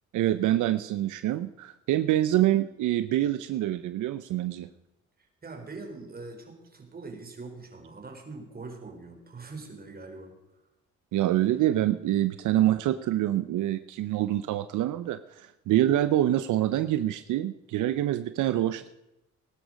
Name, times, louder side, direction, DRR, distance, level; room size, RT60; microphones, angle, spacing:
voice 1, 0.1-4.7 11.1-18.9, right 13 dB, 80° right, 12 dB, 0.7 m, -26 dB
voice 2, 5.4-10.3, right 3 dB, 30° right, 3 dB, 4.2 m, -42 dB
19.5 x 11.5 x 5.2 m, 0.91 s
cardioid pair, 90°, 30 cm